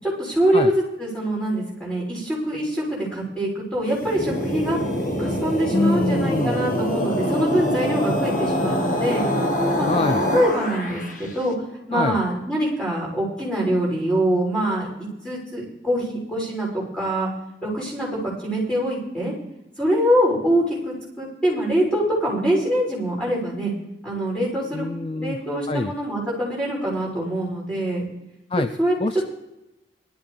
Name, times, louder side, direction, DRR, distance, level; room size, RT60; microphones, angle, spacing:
voice 1, 0.0-4.8 5.2-9.3 9.8-9.9 10.3-11.5 11.9-17.3 17.6-19.3 19.8-23.7 24.0-24.9 25.1-28.0 28.8-28.9, right 1 dB, 5° left, -5 dB, 6.9 m, -24 dB
sound 1, 3.9-11.3, equal, 45° left, 1.6 m, -24 dB
voice 2, 5.7-6.6 9.9-10.2 11.9-12.2 24.7-25.4 25.7-25.9 28.5-28.7 29.0-29.3, left 2 dB, 30° left, 10 dB, 0.4 m, -24 dB
19.5 x 13.0 x 3.4 m, 0.93 s
head